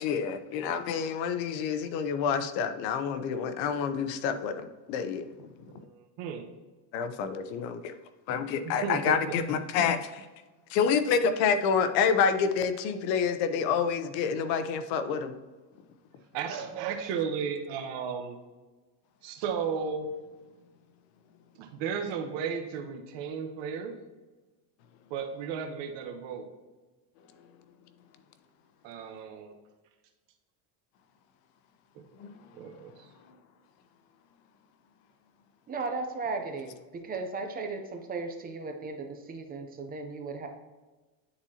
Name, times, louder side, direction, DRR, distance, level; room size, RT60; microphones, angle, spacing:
voice 1, 0.0-5.3 6.9-7.9 8.3-10.2 10.7-15.3 32.2-32.3, left 6 dB, 80° left, 10 dB, 0.9 m, -28 dB
voice 2, 5.7-6.5 8.6-9.4 16.3-18.4 19.2-20.1 21.6-24.0 25.1-26.5 28.8-29.5 32.0-32.1 32.5-32.9, right 6 dB, 60° right, 6 dB, 1.1 m, -34 dB
voice 3, 35.7-40.5, right 3 dB, 20° right, 4 dB, 0.5 m, -36 dB
9.7 x 4.3 x 2.8 m, 1.3 s
cardioid pair, 150°, 49 cm